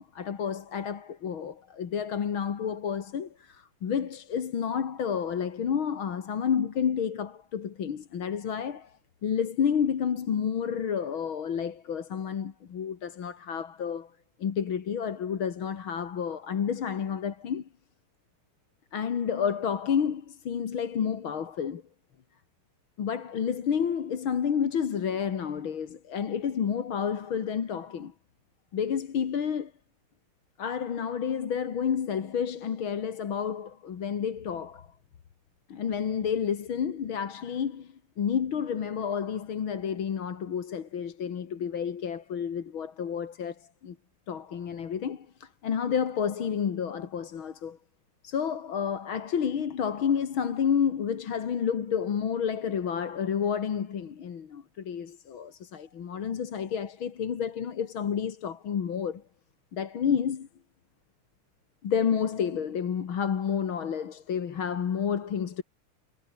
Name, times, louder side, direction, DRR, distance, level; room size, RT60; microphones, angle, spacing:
voice 1, 0.0-8.9 9.2-14.1 14.4-17.7 18.9-21.8 23.0-28.1 28.7-29.7 30.6-34.9 35.7-44.0 44.3-47.8 48.2-59.2 59.7-60.5 61.8-65.6, left 7 dB, 70° left, 2.6 m, -30 dB
omnidirectional pair, 2.4 m